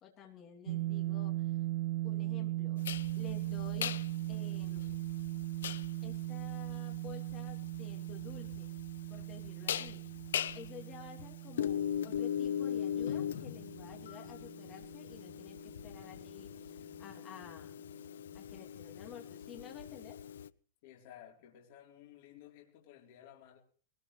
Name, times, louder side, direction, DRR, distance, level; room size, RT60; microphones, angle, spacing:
voice 1, 0.0-1.6 2.0-2.8 3.1-4.0 4.3-5.0 6.0-8.7 9.1-10.0 10.5-17.8 18.3-20.2, left 8 dB, 20° left, 1 dB, 3.0 m, -52 dB
sound 1, 0.7-16.6, right 16 dB, 80° right, 2.0 m, -39 dB
sound 2, 2.8-20.5, left 9 dB, 85° left, 0.6 m, -40 dB
voice 2, 20.8-23.6, left 11 dB, 40° left, 0 dB, 3.8 m, -55 dB
20.5 x 19.5 x 3.3 m, 0.41 s
supercardioid pair, 180°, 0 cm